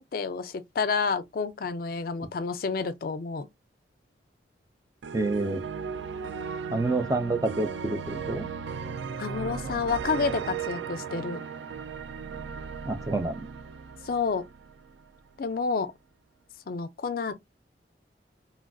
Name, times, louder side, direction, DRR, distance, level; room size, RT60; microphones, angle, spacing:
voice 1, 0.0-3.5 9.2-11.4 14.0-14.4 15.4-15.9 16.7-17.3, left 5 dB, 50° left, 0.4 m, -29 dB
sound 1, 5.0-15.1, right 6 dB, 80° right, 0.4 m, -36 dB
voice 2, 5.1-5.6 6.7-8.5 12.8-13.3, right 2 dB, 20° right, 0.4 m, -28 dB
3.2 x 2.4 x 2.2 m
head